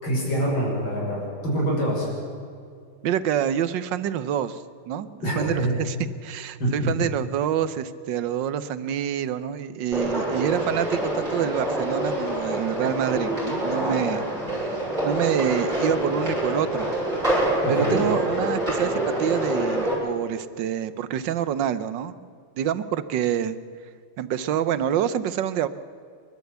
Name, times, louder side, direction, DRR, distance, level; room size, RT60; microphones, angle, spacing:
voice 1, 0.0-2.1 5.2-5.7 6.6-6.7 17.6-18.0, right 1 dB, 60° left, -4 dB, 7.0 m, -25 dB
voice 2, 3.0-6.0 6.2-14.3 14.6-14.8 15.0-16.9 17.7-22.2 22.6-23.6 24.2-25.7, right 10 dB, 65° right, 14 dB, 1.4 m, -27 dB
sound 1, 9.9-19.9, right 1 dB, 20° right, 7.7 m, -26 dB
29.0 x 12.0 x 8.2 m, 2.3 s
omnidirectional pair, 2.4 m